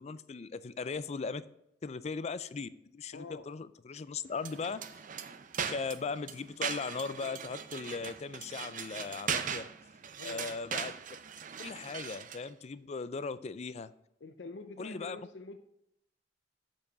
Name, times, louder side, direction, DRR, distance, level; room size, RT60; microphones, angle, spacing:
voice 1, 0.0-1.5 1.8-4.8 5.7-9.7 10.2-10.9 11.6-13.9 14.8-15.2, left 4 dB, 40° left, 15 dB, 0.4 m, -38 dB
voice 2, 3.1-3.5 10.2-10.5 14.2-15.6, left 3 dB, 80° left, 6 dB, 0.6 m, -46 dB
sound 1, 4.4-12.5, right 7 dB, 45° right, 0.6 m, -39 dB
7.6 x 4.8 x 6.7 m, 0.80 s
head